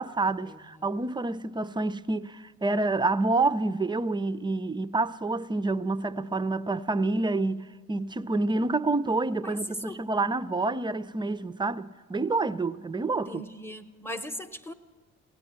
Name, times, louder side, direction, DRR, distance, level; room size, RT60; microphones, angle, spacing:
voice 1, 0.0-13.4, right 3 dB, 15° right, 0.3 m, -28 dB
voice 2, 9.4-10.0 13.3-14.7, left 1 dB, 5° left, 0.8 m, -38 dB
17.0 x 9.3 x 7.3 m
hypercardioid pair, 55°, 35 cm